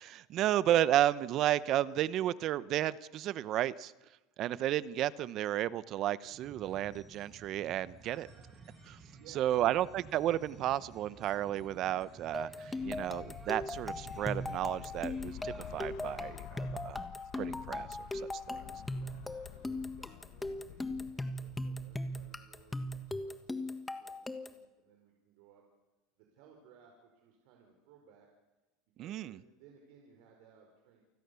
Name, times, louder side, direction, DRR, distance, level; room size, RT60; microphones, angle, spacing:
voice 1, 0.0-3.9 4.4-8.3 8.9-9.0 9.4-17.0 17.4-17.9 18.1-18.3 29.0-29.4, right 12 dB, 45° right, 18 dB, 0.8 m, -32 dB
sound 1, 6.3-16.4, right 4 dB, 25° right, 5.5 m, -54 dB
voice 2, 9.1-9.8 18.4-25.6 26.2-28.3 29.0-31.0, right 6 dB, 70° right, 2 dB, 4.9 m, -61 dB
sound 2, 12.3-24.7, left 2 dB, 10° left, 1.5 m, -39 dB
sound 3, 12.8-23.3, left 14 dB, 60° left, 1.2 m, -50 dB
28.5 x 20.0 x 7.1 m, 1.1 s
supercardioid pair, 135°, 0 cm